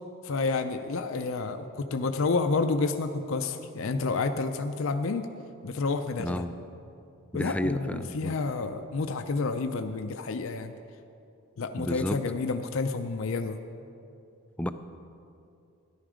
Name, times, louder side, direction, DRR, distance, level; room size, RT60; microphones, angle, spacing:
voice 1, 0.2-5.3 5.6-6.4 7.3-10.7 11.6-13.6, left 3 dB, 65° left, 7 dB, 0.5 m, -29 dB
voice 2, 6.2-6.6 7.3-8.4 11.8-12.2 14.6-14.7, left 1 dB, 5° left, 9 dB, 0.3 m, -31 dB
13.5 x 11.0 x 5.0 m, 2.6 s
head